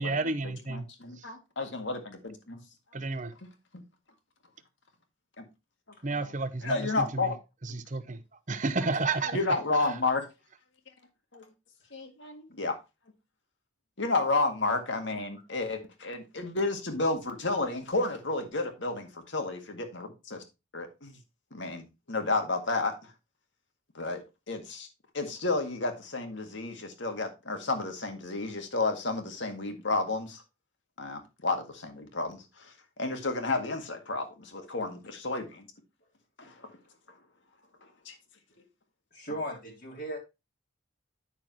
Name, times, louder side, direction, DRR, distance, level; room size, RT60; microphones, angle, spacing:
voice 1, 0.0-0.9 2.9-3.3 6.0-7.3 7.6-8.2 8.5-9.4, right 3 dB, 40° right, 0.8 m, -31 dB
voice 2, 0.7-2.6 3.4-3.8 5.4-5.5 6.1-6.3 6.6-7.4 9.3-10.2 11.3-11.4 11.9-12.8 14.0-20.4 20.7-21.2 21.5-22.9 24.0-24.2 24.5-24.9 25.1-30.4 31.0-35.6 36.4-36.5 38.1-38.2, left 3 dB, 65° left, 1.9 m, -31 dB
voice 3, 39.1-40.2, equal, 50° left, 2.0 m, -37 dB
10.0 x 6.4 x 3.0 m
head